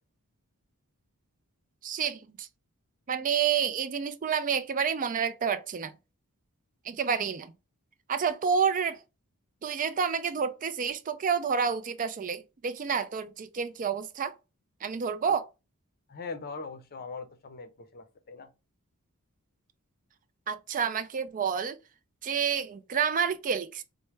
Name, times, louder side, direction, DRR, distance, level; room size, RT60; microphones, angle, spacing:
voice 1, 1.8-2.5 3.1-5.9 6.8-7.5 8.1-9.0 9.6-14.3 14.8-15.4 20.5-21.8 22.2-23.8, right 6 dB, 35° right, 0.4 m, -29 dB
voice 2, 16.1-18.5, left 4 dB, 45° left, 0.6 m, -41 dB
4.4 x 2.1 x 3.1 m
head